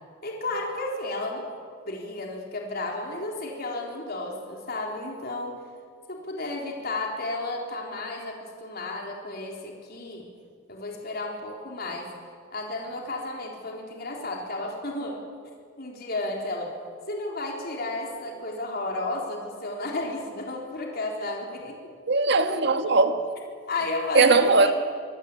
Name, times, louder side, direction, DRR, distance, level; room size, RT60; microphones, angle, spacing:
voice 1, 0.2-1.5 1.9-5.5 6.1-10.3 10.7-12.1 12.5-15.2 15.8-16.7 17.1-21.9 23.7-24.7, left 2 dB, 50° left, 4.1 m, -33 dB
voice 2, 22.1-23.2 24.1-24.7, right 3 dB, 60° right, 1.9 m, -19 dB
26.0 x 21.5 x 8.6 m
head